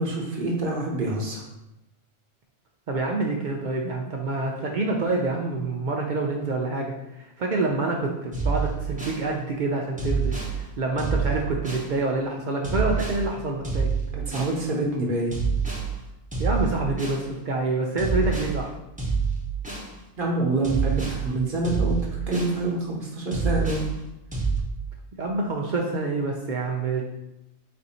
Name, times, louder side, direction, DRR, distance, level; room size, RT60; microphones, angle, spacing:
voice 1, 0.0-1.4 14.1-15.3 20.2-22.0 22.3-23.9, right 2 dB, 45° right, -2 dB, 0.9 m, -26 dB
voice 2, 2.9-13.9 16.4-18.7 25.2-27.0, right 3 dB, 70° right, 0 dB, 0.4 m, -27 dB
sound 1, 8.3-9.2 10.0-10.5 11.0-11.9 12.6-13.2 13.6-14.5 15.3-15.9 16.3-17.2 18.0-18.5 19.0-19.9 20.6-21.2 21.6-22.6 23.3-23.9 24.3-24.6, right 5 dB, 10° right, 0.6 m, -27 dB
4.2 x 2.6 x 4.1 m, 0.90 s
omnidirectional pair, 1.3 m